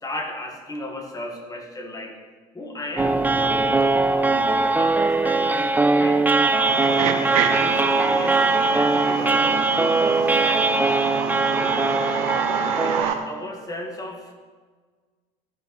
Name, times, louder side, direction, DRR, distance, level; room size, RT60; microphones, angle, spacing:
voice 1, 0.0-2.2 2.5-6.8 7.5-12.2 12.8-14.3, left 1 dB, 20° left, 1 dB, 1.9 m, -36 dB
sound 1, 3.0-13.0, right 3 dB, 10° right, 0.5 m, -21 dB
sound 2, 6.6-13.2, right 8 dB, 85° right, 0.9 m, -28 dB
14.0 x 5.3 x 4.2 m, 1.5 s
supercardioid pair, 90°, 18 cm